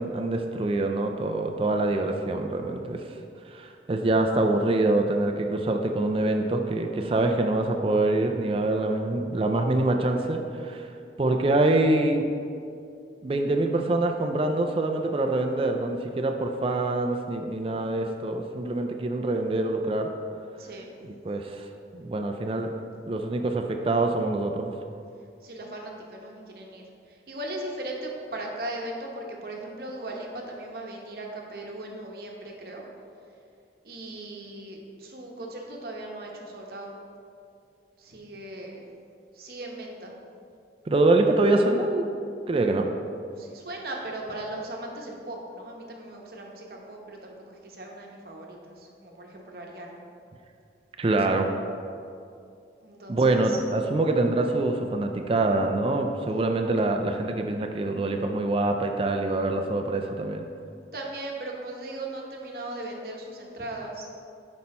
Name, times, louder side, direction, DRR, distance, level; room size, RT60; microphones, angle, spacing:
voice 1, 0.0-3.0 3.5-10.9 11.2-12.3 13.2-20.1 21.0-21.7 21.9-22.7 23.1-24.7 40.9-42.1 42.5-42.9 51.0-51.5 53.1-60.5, right 2 dB, 30° right, 4 dB, 0.3 m, -25 dB
voice 2, 20.6-20.9 25.4-32.8 33.8-36.9 38.0-38.8 39.3-40.1 43.3-50.0 52.8-53.6 60.9-64.1, right 1 dB, 55° right, 0 dB, 0.9 m, -38 dB
6.0 x 5.4 x 4.2 m, 2.5 s
head